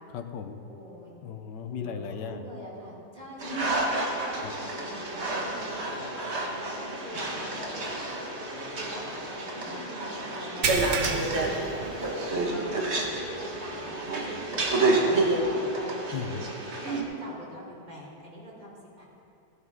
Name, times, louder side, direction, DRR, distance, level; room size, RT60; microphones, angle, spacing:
voice 1, 0.1-0.6 1.2-2.5 4.4-4.5 11.0-11.2 16.1-16.5, left 7 dB, 85° left, 7 dB, 1.4 m, -36 dB
voice 2, 0.7-1.1 1.8-3.8 4.2-6.3 6.5-8.2 8.7-10.7 11.2-11.6 12.5-13.0 13.4-13.8 14.1-16.1 16.6-19.1, right 1 dB, 25° right, -5 dB, 3.3 m, -43 dB
sound 1, 3.4-17.0, right 2 dB, 40° right, 1.7 m, -29 dB
sound 2, 10.6-12.5 12.9-13.1 13.5-13.6 15.3-15.4, right 5 dB, 80° right, 1.6 m, -31 dB
18.0 x 11.0 x 3.7 m, 2.6 s
omnidirectional pair, 1.8 m